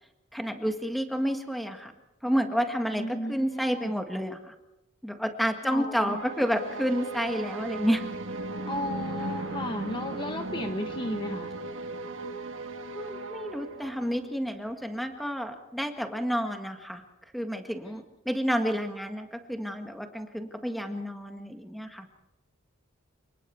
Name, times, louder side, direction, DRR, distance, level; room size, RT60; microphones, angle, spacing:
voice 1, 0.3-1.9 2.2-4.5 5.0-8.1 12.9-17.0 17.3-22.1, equal, ahead, 5 dB, 1.7 m, -30 dB
voice 2, 2.9-3.9 5.6-6.2 8.6-11.5 17.8-18.0, left 1 dB, 25° left, 6 dB, 1.0 m, -34 dB
sound 1, 5.9-14.4, right 3 dB, 65° right, 1.7 m, -37 dB
28.5 x 19.5 x 4.6 m, 0.94 s
head